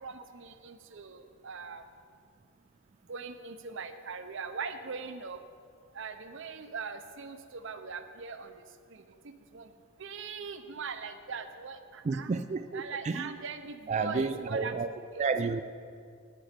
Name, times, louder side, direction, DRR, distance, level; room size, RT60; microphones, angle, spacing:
voice 1, 0.0-1.8 3.1-5.4 5.9-8.5 9.5-9.7 10.0-12.3 12.7-14.7 15.1-15.2, right 5 dB, 60° right, 9 dB, 0.7 m, -40 dB
voice 2, 12.0-13.3 13.9-14.9 15.2-15.6, right 4 dB, 35° right, 10 dB, 0.3 m, -31 dB
11.5 x 10.5 x 5.1 m, 2.3 s
head